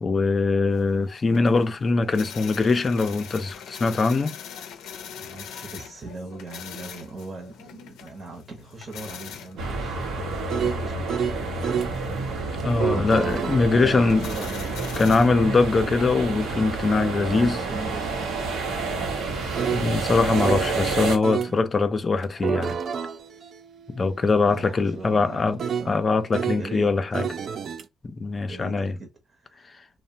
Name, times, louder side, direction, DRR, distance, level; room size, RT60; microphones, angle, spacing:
voice 1, 0.0-4.4 12.6-14.3 15.0-17.6 19.7-22.8 23.9-25.6 25.9-27.2 28.0-28.9, left 3 dB, 35° left, 0.4 m, -22 dB
sound 1, 0.7-18.6, left 8 dB, 90° left, 0.5 m, -43 dB
voice 2, 5.2-12.6 12.9-14.8 17.3-18.6 21.5-21.6 24.4-26.0 26.6-26.9 28.5-29.9, right 3 dB, 35° right, 0.8 m, -40 dB
sound 2, 9.6-12.0 12.6-20.7 21.2-21.6 22.2-26.7 27.1-27.8, right 7 dB, 55° right, 0.3 m, -32 dB
sound 3, 9.6-21.2, right 3 dB, 85° right, 0.8 m, -29 dB
2.8 x 2.1 x 2.7 m
cardioid pair, 90°, 0 cm